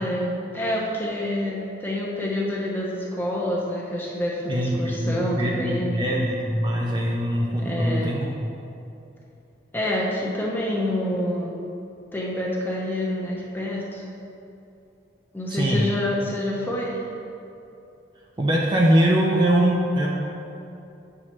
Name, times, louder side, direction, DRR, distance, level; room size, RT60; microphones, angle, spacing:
voice 1, 0.0-6.0 7.6-8.1 9.7-11.5 12.1-14.0 15.3-17.0, left 1 dB, 10° left, -4 dB, 0.9 m, -27 dB
voice 2, 4.5-8.5 15.5-15.9 18.4-20.1, equal, 25° right, -3 dB, 0.5 m, -22 dB
7.8 x 5.8 x 3.1 m, 2.8 s
head